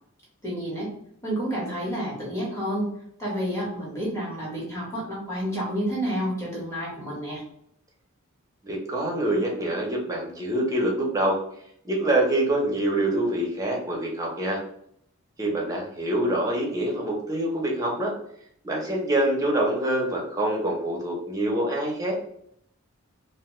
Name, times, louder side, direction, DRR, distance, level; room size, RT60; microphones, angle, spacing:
voice 1, 0.4-0.9 1.2-2.9 3.2-7.4, equal, 15° left, -6 dB, 1.0 m, -29 dB
voice 2, 8.6-11.4 11.8-14.6 15.4-18.1 18.6-22.2, right 1 dB, 15° right, -2 dB, 0.6 m, -25 dB
2.6 x 2.2 x 2.9 m, 0.69 s
head